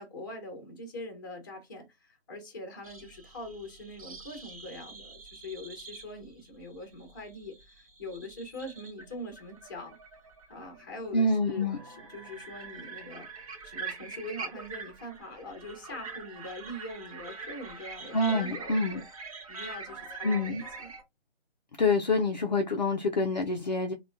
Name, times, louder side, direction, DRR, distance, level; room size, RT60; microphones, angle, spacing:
voice 1, 0.0-10.0 10.5-13.3 13.6-19.0 19.5-20.9, left 1 dB, 20° left, 0.7 m, -43 dB
sound 1, 2.8-21.0, right 4 dB, 35° right, 0.6 m, -44 dB
voice 2, 11.1-11.8 18.1-19.0 20.2-20.6 21.8-23.9, left 2 dB, 45° left, 0.4 m, -26 dB
3.3 x 2.2 x 2.5 m
figure-of-eight pair, 155°, 32 cm